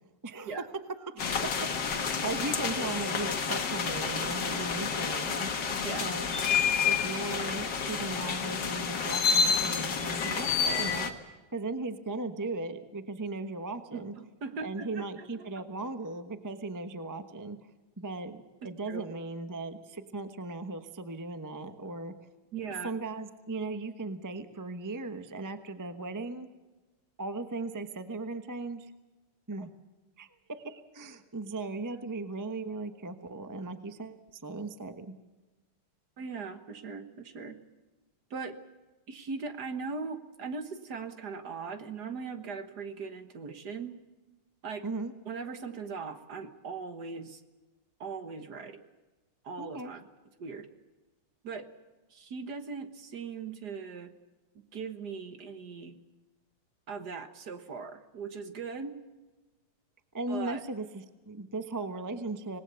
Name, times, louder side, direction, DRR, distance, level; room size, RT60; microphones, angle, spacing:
voice 1, 0.2-0.5 1.0-5.5 6.0-6.3 6.8-14.1 14.6-17.6 18.0-18.4 18.6-22.1 22.8-26.5 27.2-28.9 29.5-29.7 30.2-30.3 30.6-35.1 44.8-45.1 49.6-49.9 60.1-62.6, right 3 dB, 15° right, 9 dB, 0.7 m, -37 dB
sound 1, 1.2-11.1, left 6 dB, 55° left, 2.1 m, -29 dB
voice 2, 13.9-15.5 18.9-19.1 22.5-22.9 32.0-32.1 36.2-37.6 38.3-38.6 39.1-44.0 44.6-44.9 45.3-47.4 48.0-48.8 49.4-50.0 50.4-50.7 51.4-51.7 52.1-54.1 54.7-56.0 56.9-59.0 60.3-60.6, right 5 dB, 50° right, 8 dB, 1.8 m, -39 dB
26.0 x 19.5 x 7.0 m, 1.2 s
omnidirectional pair, 2.4 m